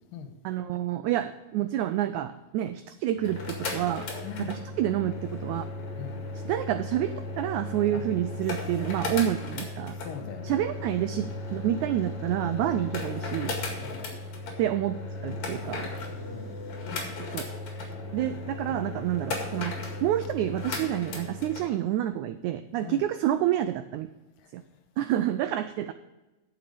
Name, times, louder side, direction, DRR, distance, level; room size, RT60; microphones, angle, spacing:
voice 1, 0.4-4.1 4.4-5.7 6.4-10.0 10.4-13.5 14.6-15.9 17.3-17.4 18.1-24.1 24.5-24.6 25.0-25.9, right 12 dB, 90° right, 11 dB, 1.6 m, -28 dB
sound 1, 3.1-21.7, left 2 dB, 60° left, 3.1 m, -36 dB
voice 2, 4.2-4.6 6.0-6.2 7.9-8.0 10.0-10.6 11.2-11.4 12.6-12.8 13.8-14.1 16.1-16.7 17.9-18.4 18.6-19.0 22.8-23.0, left 7 dB, 85° left, 7 dB, 2.7 m, -42 dB
10.5 x 7.1 x 5.0 m, 1.1 s
omnidirectional pair, 3.9 m